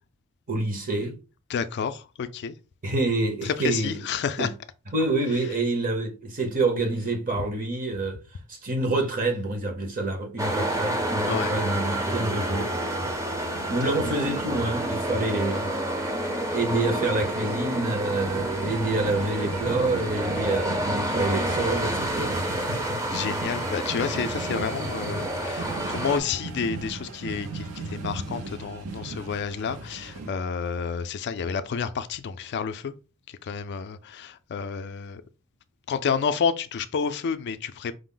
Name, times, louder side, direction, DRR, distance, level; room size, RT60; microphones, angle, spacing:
voice 1, 0.5-1.2 2.8-4.0 4.4-4.5 4.9-8.2 8.5-12.7 13.0-13.1 13.7-15.7 16.5-23.0, right 2 dB, 40° right, 0.9 m, -27 dB
voice 2, 1.5-2.6 3.4-4.5 7.4-7.5 11.3-11.5 13.8-13.9 23.1-32.9 33.3-35.2 35.9-37.9, left 6 dB, 50° left, 0.3 m, -30 dB
sound 1, 10.4-26.2, right 1 dB, 15° right, 0.6 m, -29 dB
sound 2, 18.1-30.3, right 3 dB, 75° right, 0.7 m, -38 dB
5.0 x 2.0 x 3.7 m
head